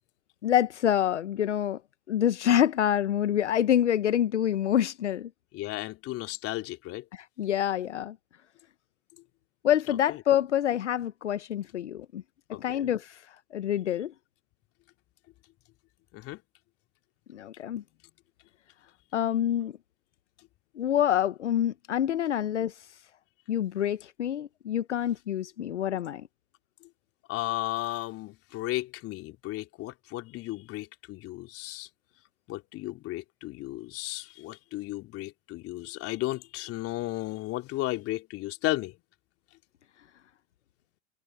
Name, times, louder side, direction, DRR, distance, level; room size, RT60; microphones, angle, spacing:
voice 1, 0.4-1.8 2.1-5.3 7.1-8.2 9.6-12.2 12.5-14.1 17.3-17.8 19.1-19.7 20.7-23.0 23.5-26.3, left 10 dB, 80° left, 1.1 m, -27 dB
voice 2, 5.5-7.1 10.1-10.2 12.5-12.9 16.1-16.4 26.8-26.9 27.3-31.9 32.5-39.0, left 17 dB, 40° left, 3.4 m, -34 dB
hypercardioid pair, 105°, 35 cm